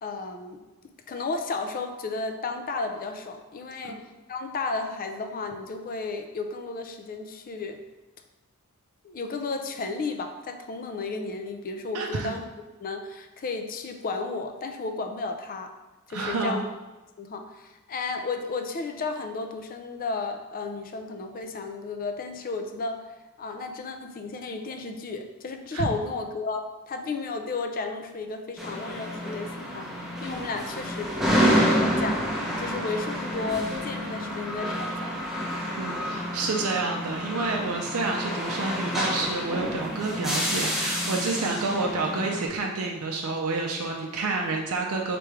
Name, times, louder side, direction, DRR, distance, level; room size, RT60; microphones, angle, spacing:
voice 1, 0.0-4.0 4.3-7.8 9.0-12.4 12.8-15.7 16.1-16.6 17.2-23.0 23.4-29.9 30.2-31.1 31.4-32.3 32.6-35.2, left 3 dB, 40° left, 6 dB, 0.4 m, -33 dB
voice 2, 11.9-12.3 16.1-16.6 25.7-25.8 35.8-45.2, right 3 dB, 70° right, 0 dB, 0.5 m, -29 dB
sound 1, 28.6-42.5, equal, ahead, 0.7 m, -28 dB
3.4 x 3.2 x 4.8 m, 1.1 s
head